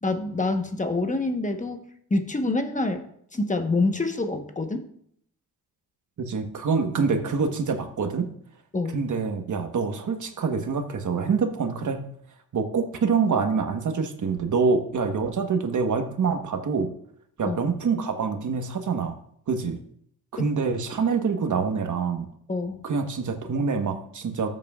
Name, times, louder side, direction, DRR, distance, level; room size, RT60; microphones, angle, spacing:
voice 1, 0.0-1.8 2.1-3.0 3.3-4.8 8.7-9.0 17.4-17.6 22.5-22.8, left 2 dB, 20° left, 6 dB, 1.1 m, -26 dB
voice 2, 6.2-8.3 8.9-12.0 12.5-16.9 17.4-19.1 19.5-19.8 20.3-22.3 22.8-24.5, right 5 dB, 50° right, 6 dB, 1.3 m, -26 dB
13.5 x 7.5 x 2.4 m, 0.67 s
cardioid pair, 90°, 38 cm